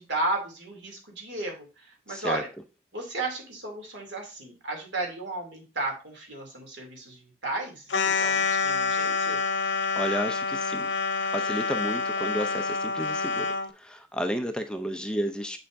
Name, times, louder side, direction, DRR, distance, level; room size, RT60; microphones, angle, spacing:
voice 1, 0.0-2.5 2.9-9.4, right 2 dB, 85° right, 2 dB, 2.8 m, -34 dB
voice 2, 2.1-2.4 10.0-10.9 11.2-13.5 13.7-15.6, equal, 5° left, 7 dB, 0.5 m, -32 dB
sound 1, 7.9-13.7, left 4 dB, 85° left, 0.7 m, -27 dB
7.4 x 6.8 x 2.6 m, 0.31 s
head